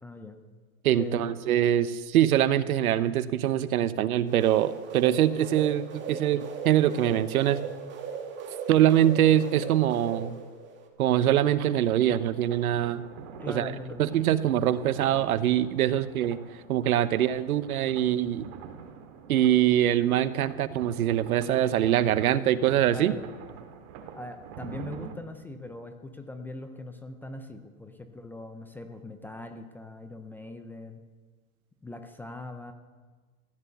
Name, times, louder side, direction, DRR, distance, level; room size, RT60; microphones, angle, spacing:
voice 1, 0.0-0.4 0.9-1.3 13.4-14.2 22.9-23.3 24.1-31.0 31.8-32.7, left 2 dB, 5° left, 6 dB, 0.5 m, -41 dB
voice 2, 0.8-7.6 8.7-10.4 11.0-13.0 13.5-13.7 14.0-16.4 16.7-18.5 19.3-23.1, right 11 dB, 70° right, 15 dB, 1.0 m, -23 dB
sound 1, 4.2-10.9, right 6 dB, 25° right, 2.2 m, -38 dB
sound 2, 11.5-25.1, right 7 dB, 45° right, 2.1 m, -46 dB
15.5 x 10.5 x 6.9 m, 1.4 s
hypercardioid pair, 135°, 44 cm